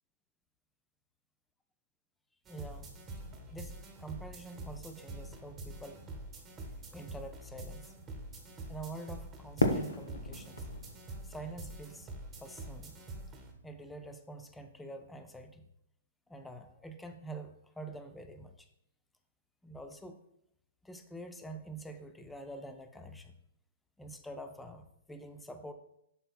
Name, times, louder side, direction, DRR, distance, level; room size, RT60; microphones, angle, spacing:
voice 1, 2.5-3.0 3.5-6.0 6.9-7.9 8.7-10.7 11.2-12.1 12.4-13.0 13.6-15.7 16.3-18.7 19.6-20.2 20.8-23.3 24.0-25.7, right 2 dB, 5° left, 8 dB, 0.5 m, -46 dB
sound 1, 2.5-13.5, right 2 dB, 15° right, 1.2 m, -46 dB
Fireworks, 9.6-12.6, left 2 dB, 70° left, 0.8 m, -34 dB
11.0 x 4.4 x 2.2 m, 0.76 s
figure-of-eight pair, 115°, 0 cm